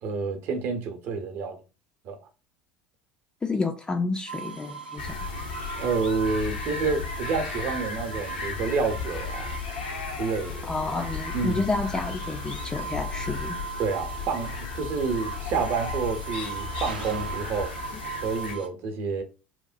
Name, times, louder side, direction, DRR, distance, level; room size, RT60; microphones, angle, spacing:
voice 1, 0.0-1.6 2.0-2.2 5.7-9.5 10.2-10.6 11.3-11.6 13.8-17.7 18.2-19.2, right 4 dB, 50° right, 0.7 m, -29 dB
voice 2, 3.4-5.3 10.6-13.6, left 3 dB, 15° left, 0.3 m, -30 dB
sound 1, 4.3-18.7, right 6 dB, 80° right, 0.5 m, -39 dB
sound 2, 5.0-18.6, left 5 dB, 75° left, 0.6 m, -35 dB
2.9 x 2.1 x 2.5 m
figure-of-eight pair, 70°, 5 cm